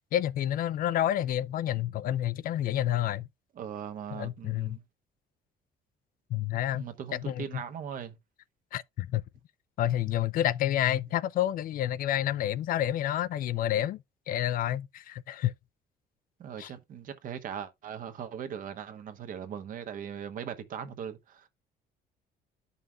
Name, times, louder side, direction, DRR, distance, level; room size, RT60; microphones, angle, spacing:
voice 1, 0.1-3.3 4.1-4.8 6.3-7.6 8.7-9.2 9.8-15.5 16.6-16.7, left 12 dB, 55° left, 0.4 m, -29 dB
voice 2, 3.6-4.8 6.7-8.2 16.4-21.5, right 8 dB, 55° right, 1.0 m, -39 dB
12.5 x 5.5 x 2.3 m
cardioid pair, 110°, 17 cm